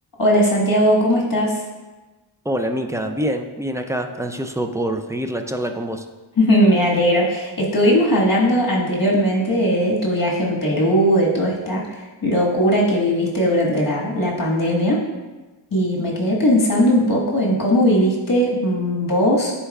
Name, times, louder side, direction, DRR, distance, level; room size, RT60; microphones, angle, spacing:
voice 1, 0.2-1.6 6.4-15.0 15.7-19.5, equal, 45° left, -4 dB, 1.7 m, -18 dB
voice 2, 2.4-6.1 17.0-17.1, equal, 5° right, 5 dB, 0.4 m, -25 dB
9.8 x 4.4 x 2.4 m, 1.2 s
wide cardioid pair, 80°, 48 cm